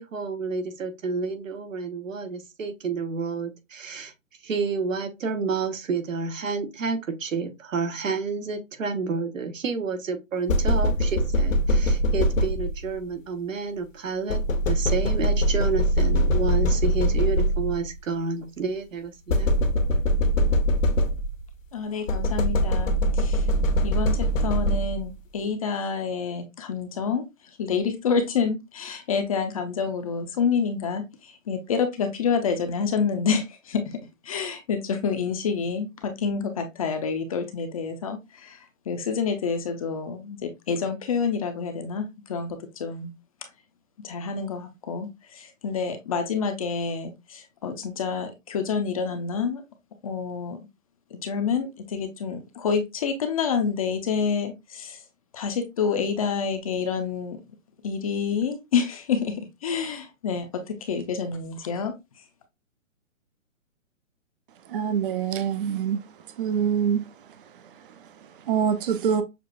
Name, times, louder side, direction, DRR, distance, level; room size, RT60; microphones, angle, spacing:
voice 1, 0.0-4.1 4.4-14.4 14.7-19.5, right 4 dB, 75° right, 1.2 m, -30 dB
sound 1, 10.5-13.0 14.3-17.9 19.3-21.5 22.1-25.2, equal, 75° left, 1.1 m, -22 dB
voice 2, 21.7-23.5 23.8-43.1 43.4-43.5 44.0-49.6 50.0-50.7 51.1-55.0 55.3-57.4 57.8-62.2, left 6 dB, 30° left, 0.5 m, -28 dB
voice 3, 64.7-66.0 66.4-67.0 68.2-69.2, right 7 dB, 45° right, 0.6 m, -25 dB
6.7 x 2.4 x 2.4 m
hypercardioid pair, 145°, 39 cm